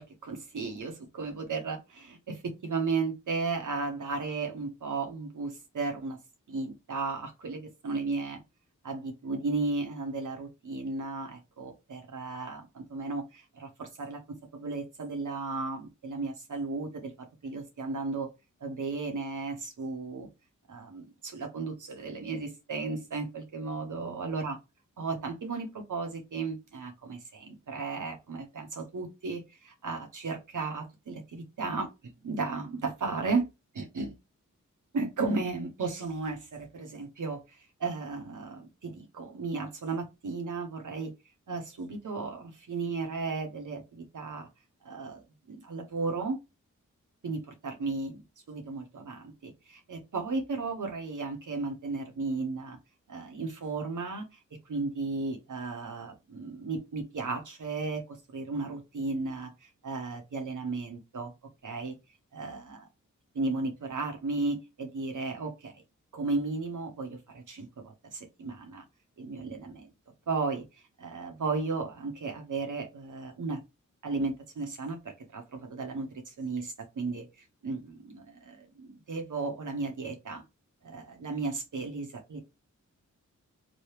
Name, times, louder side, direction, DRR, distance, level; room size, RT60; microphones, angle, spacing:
voice 1, 0.0-6.2 6.5-8.4 8.8-14.2 14.5-17.1 17.4-18.3 18.6-20.3 20.7-24.6 25.0-31.9 32.2-33.4 33.7-34.1 34.9-41.1 41.5-44.5 44.8-46.4 47.2-48.2 48.5-52.8 53.1-54.3 54.7-61.3 61.6-61.9 62.3-62.8 63.4-65.7 66.1-68.8 69.2-69.9 70.3-70.6 71.0-73.6 74.0-80.4 80.8-82.4, right 3 dB, 70° right, 3 dB, 0.9 m, -34 dB
3.1 x 2.2 x 3.2 m, 0.25 s
cardioid pair, 55°, 31 cm